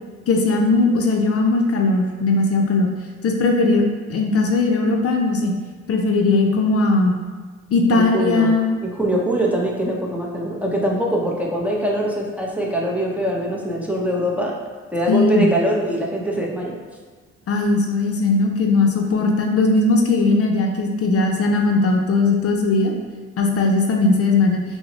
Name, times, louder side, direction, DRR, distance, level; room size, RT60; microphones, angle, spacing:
voice 1, 0.3-2.9 3.2-3.8 4.1-5.5 5.9-7.2 7.7-8.7 15.1-15.5 17.5-22.9 23.4-24.6, left 3 dB, 50° left, 2 dB, 0.5 m, -18 dB
voice 2, 7.9-8.5 8.8-14.5 14.9-16.8, right 1 dB, 5° right, -3 dB, 0.6 m, -23 dB
5.6 x 2.0 x 2.7 m, 1.4 s
cardioid pair, 90°, 30 cm